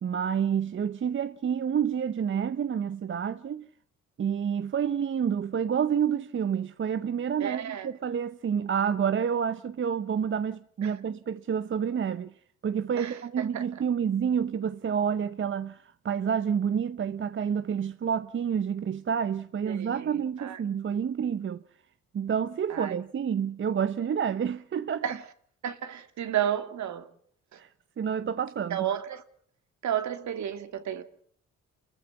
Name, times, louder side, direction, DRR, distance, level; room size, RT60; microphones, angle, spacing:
voice 1, 0.0-3.7 4.2-12.3 12.6-21.6 22.1-25.1 27.6-27.7 28.0-28.9, right 7 dB, 40° right, 0.8 m, -29 dB
voice 2, 7.4-7.9 10.8-10.9 13.0-13.6 19.7-20.6 22.7-22.9 25.0-25.2 25.6-27.1 27.5-27.6 28.7-29.2 29.8-31.0, right 10 dB, 65° right, 2.3 m, -32 dB
29.0 x 14.5 x 7.1 m
cardioid pair, 90°, 30 cm